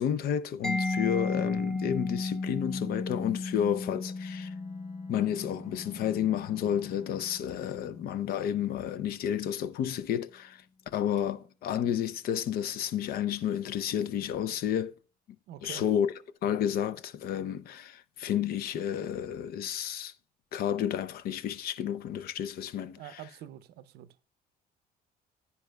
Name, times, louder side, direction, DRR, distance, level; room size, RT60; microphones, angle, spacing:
voice 1, 0.0-4.5 5.1-14.9 15.6-16.1 16.4-20.1 20.5-23.0, left 9 dB, 65° left, 0.5 m, -31 dB
Mallet percussion, 0.6-8.2, left 3 dB, 5° left, 0.6 m, -35 dB
Bowed string instrument, 3.9-8.2, left 4 dB, 35° left, 1.3 m, -52 dB
voice 2, 15.5-15.8 23.0-24.2, right 11 dB, 75° right, 0.6 m, -45 dB
10.0 x 9.6 x 2.2 m
cardioid pair, 110°, 17 cm